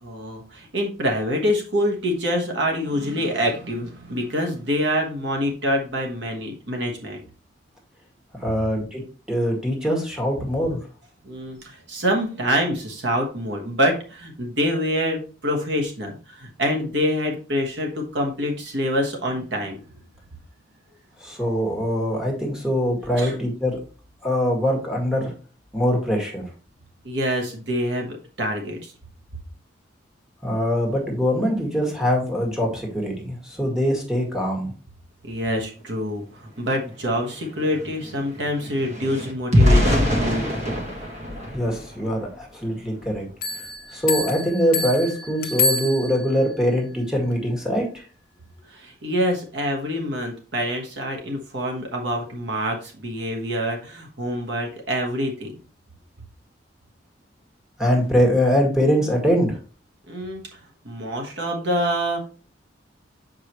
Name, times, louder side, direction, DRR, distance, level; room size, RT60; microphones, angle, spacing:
voice 1, 0.0-7.2 11.2-19.8 23.2-23.4 27.0-28.9 35.2-40.5 48.7-55.6 60.1-60.5 60.8-62.3, equal, 65° right, 1 dB, 1.3 m, -26 dB
voice 2, 8.4-9.0 9.3-10.8 21.2-23.8 24.2-25.3 25.7-26.4 30.4-34.7 41.5-43.3 43.9-48.0 57.8-59.6, equal, 5° right, -2 dB, 1.9 m, -23 dB
sound 1, 36.6-36.7 36.9-42.4 42.9-43.2 43.5-43.7, left 1 dB, 40° right, 1.4 m, -24 dB
Bell, 43.4-46.5, left 3 dB, 50° left, 0.8 m, -27 dB
7.3 x 5.0 x 3.0 m, 0.38 s
head